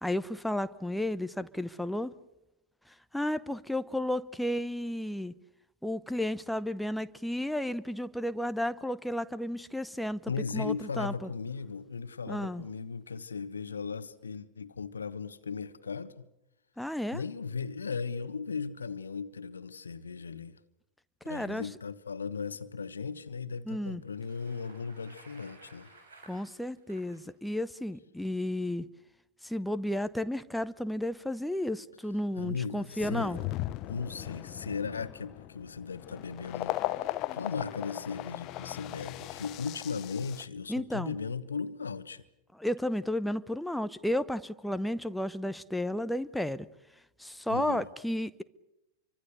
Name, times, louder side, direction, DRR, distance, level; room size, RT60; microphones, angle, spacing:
voice 1, 0.0-2.1 2.9-5.3 5.8-11.3 12.3-12.6 16.8-17.2 21.2-21.7 23.7-24.0 26.3-28.9 29.4-33.4 40.7-41.2 42.5-46.7 47.2-48.4, left 1 dB, ahead, 0.8 m, -33 dB
voice 2, 10.3-16.2 17.1-20.6 21.2-25.9 32.4-33.4 33.9-36.8 37.3-42.2 47.5-47.9, left 5 dB, 75° left, 1.2 m, -37 dB
Bicycle, 24.0-27.3, right 3 dB, 70° right, 7.9 m, -56 dB
sound 1, 33.0-40.4, left 16 dB, 40° left, 0.9 m, -37 dB
28.0 x 24.5 x 6.6 m
figure-of-eight pair, 90°, 0 cm